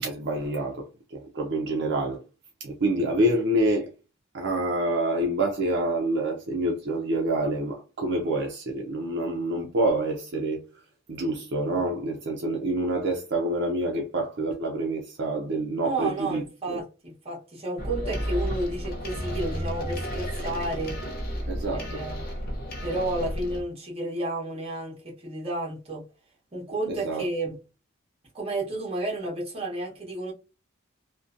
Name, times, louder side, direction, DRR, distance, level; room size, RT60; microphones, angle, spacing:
voice 1, 0.0-2.2 2.6-3.9 4.3-10.6 11.1-16.4 16.7-16.8 21.5-22.0 26.9-27.2, right 1 dB, 55° right, 0.4 m, -27 dB
voice 2, 15.8-21.0 21.7-22.3 22.8-26.0 26.5-27.6 28.3-30.3, right 2 dB, 25° right, 0.8 m, -31 dB
sound 1, 17.8-23.6, equal, 45° left, 0.6 m, -32 dB
2.6 x 2.1 x 2.4 m
head